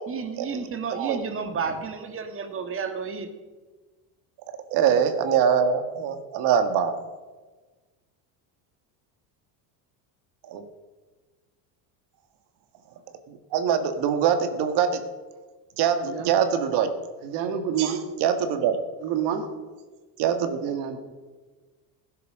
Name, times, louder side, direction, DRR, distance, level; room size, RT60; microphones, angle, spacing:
voice 1, 0.1-3.3, right 5 dB, 30° right, 8 dB, 1.6 m, -31 dB
voice 2, 4.7-7.0 10.5-10.6 13.3-15.0 15.8-16.9 17.8-18.8 20.2-20.6, right 7 dB, 60° right, 8 dB, 1.7 m, -23 dB
voice 3, 17.2-18.1 19.0-19.5 20.6-21.0, right 8 dB, 80° right, 6 dB, 2.1 m, -28 dB
17.0 x 11.0 x 6.4 m, 1.3 s
cardioid pair, 140°, 45 cm